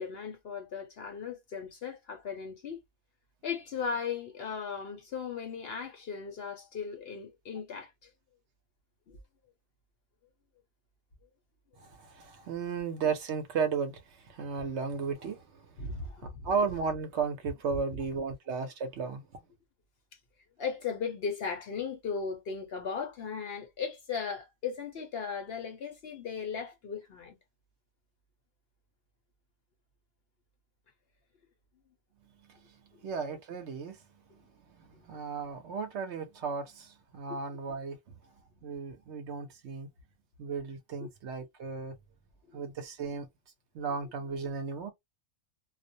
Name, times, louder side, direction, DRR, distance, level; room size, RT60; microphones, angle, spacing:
voice 1, 0.0-2.8 3.4-8.1 9.1-9.2 15.8-16.5 17.7-17.8 20.6-27.4 33.0-33.1 37.3-37.4 41.0-41.1, left 6 dB, 60° left, 0.7 m, -37 dB
voice 2, 11.8-15.8 16.4-19.2 32.5-34.0 34.8-38.0 38.6-39.9 40.4-41.9 42.5-43.3 43.7-44.9, right 5 dB, 65° right, 0.8 m, -35 dB
2.4 x 2.0 x 2.6 m
omnidirectional pair, 1.4 m